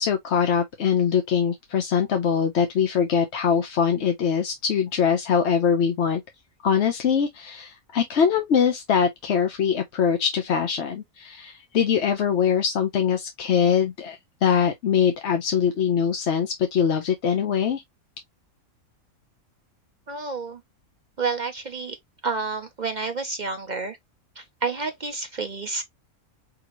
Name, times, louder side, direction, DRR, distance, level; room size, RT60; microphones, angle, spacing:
voice 1, 0.0-6.2 6.6-17.8, left 7 dB, 55° left, 0.9 m, -23 dB
voice 2, 20.1-20.6 21.2-22.0 22.2-24.0 24.4-25.8, right 4 dB, 45° right, 0.6 m, -29 dB
5.9 x 2.8 x 3.0 m
omnidirectional pair, 1.5 m